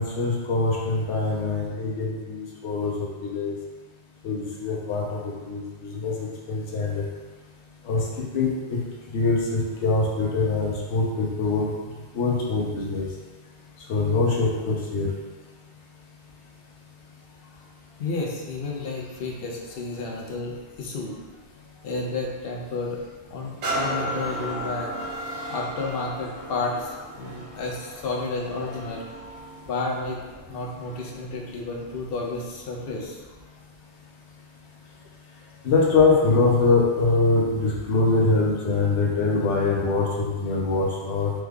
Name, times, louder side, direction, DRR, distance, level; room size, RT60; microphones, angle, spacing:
voice 1, 0.0-3.6 4.2-7.0 7.8-8.0 8.3-8.8 9.1-11.7 12.1-13.1 13.9-15.1 35.6-41.3, left 3 dB, 85° left, -3 dB, 1.0 m, -23 dB
voice 2, 18.0-21.2 21.8-23.0 23.3-24.9 25.3-29.1 29.7-30.2 30.5-33.2, left 3 dB, 65° left, -1 dB, 0.7 m, -31 dB
sound 1, 23.6-31.2 31.8-31.9, right 1 dB, 75° right, 1.0 m, -34 dB
3.2 x 2.2 x 3.4 m, 1.3 s
omnidirectional pair, 1.2 m